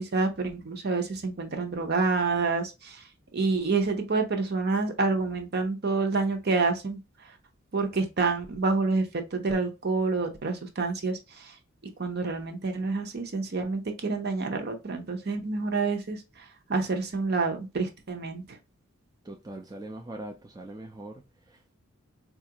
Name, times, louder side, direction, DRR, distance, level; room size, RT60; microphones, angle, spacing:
voice 1, 0.0-3.0 3.3-7.0 7.7-9.1 9.3-11.5 12.0-16.4 16.7-18.6, right 4 dB, 50° right, 0.7 m, -28 dB
voice 2, 19.2-21.2 21.5-21.7, right 1 dB, 15° right, 0.4 m, -41 dB
4.3 x 2.4 x 2.8 m
head